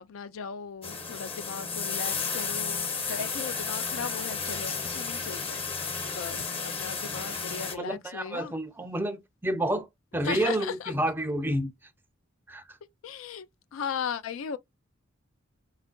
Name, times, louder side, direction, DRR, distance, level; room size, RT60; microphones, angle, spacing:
voice 1, 0.0-5.6 6.1-8.5 10.2-10.9 13.0-13.5 13.7-14.6, left 7 dB, 85° left, 0.4 m, -37 dB
sound 1, 0.8-7.7, left 5 dB, 30° left, 0.6 m, -33 dB
voice 2, 7.7-9.9 10.1-11.7 12.5-12.8, right 1 dB, 10° right, 0.4 m, -29 dB
4.3 x 2.4 x 2.2 m
head